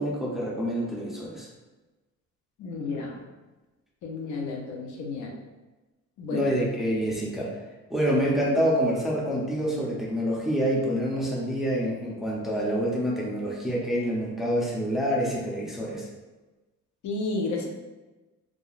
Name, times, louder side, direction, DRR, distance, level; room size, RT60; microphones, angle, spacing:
voice 1, 0.0-1.5 6.3-7.5 7.9-16.1, equal, ahead, -5 dB, 0.5 m, -27 dB
voice 2, 2.6-3.2 4.0-5.3 6.2-6.5 17.0-17.7, left 3 dB, 70° left, 1 dB, 0.6 m, -31 dB
2.8 x 2.3 x 2.3 m, 1.2 s
cardioid pair, 120°, 31 cm